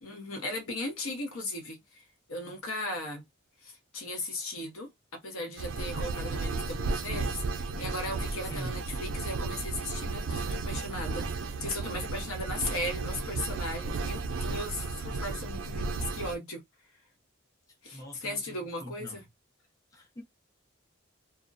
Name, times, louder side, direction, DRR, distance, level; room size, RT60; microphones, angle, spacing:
voice 1, 0.0-2.0 2.3-3.2 3.6-4.9 5.2-16.6 17.8-19.2, left 1 dB, 80° left, 0.8 m, -37 dB
sound 1, 5.6-16.4, right 3 dB, 80° right, 0.4 m, -34 dB
voice 2, 8.4-8.7 17.9-19.2 19.9-20.2, equal, 15° left, 0.6 m, -43 dB
2.3 x 2.1 x 2.5 m
head